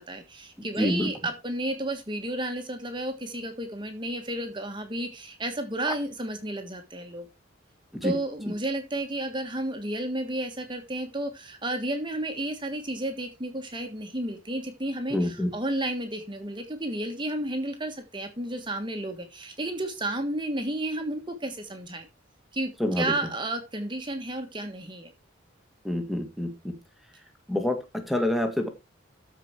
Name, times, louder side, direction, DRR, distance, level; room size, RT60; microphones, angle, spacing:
voice 1, 0.0-7.3 8.0-22.1 22.5-25.1, right 1 dB, 25° right, 6 dB, 1.5 m, -32 dB
voice 2, 0.6-1.1 7.9-8.1 15.1-15.5 22.8-23.1 25.8-26.7 27.5-28.7, left 1 dB, ahead, 5 dB, 1.8 m, -27 dB
13.5 x 5.1 x 4.6 m, 0.26 s
head